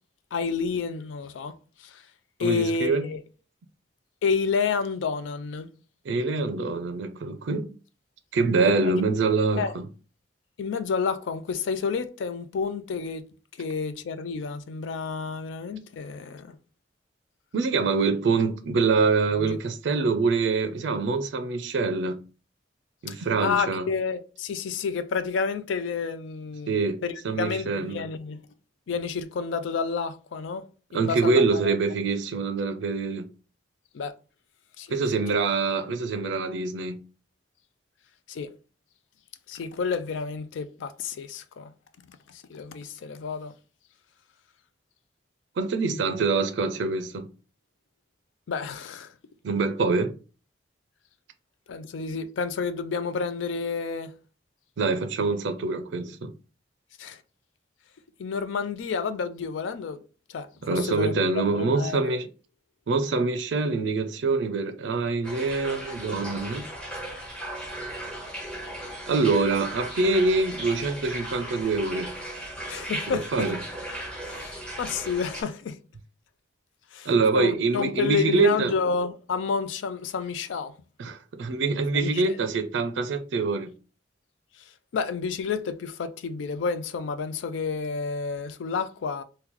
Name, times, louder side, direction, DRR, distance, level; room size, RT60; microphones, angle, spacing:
voice 1, 0.3-1.5 1.8-2.0 2.4-3.2 4.2-5.7 8.7-8.9 9.6-9.7 10.6-13.2 13.6-16.6 19.3-19.6 23.1-26.8 27.0-28.4 28.9-30.6 30.9-31.7 33.9-34.2 34.8-34.9 38.3-38.5 39.5-41.7 42.3-43.5 48.5-49.1 51.7-54.1 57.0-57.2 58.2-60.0 60.3-61.2 61.5-62.2 72.7-73.5 74.2-75.8 76.9-80.7 81.9-82.4 84.9-89.2, left 5 dB, 85° left, 0.4 m, -30 dB
voice 2, 2.4-3.1 6.1-7.7 8.3-9.8 17.5-22.2 23.0-23.9 26.7-28.0 30.9-33.3 34.9-37.0 45.6-47.3 49.4-50.1 54.8-56.3 60.6-62.3 62.9-66.6 69.1-72.1 73.1-73.6 77.1-78.7 81.0-83.7, right 4 dB, 70° right, 0.4 m, -25 dB
sound 1, 65.2-75.4, right 1 dB, 5° left, 0.7 m, -37 dB
2.9 x 2.2 x 3.7 m
head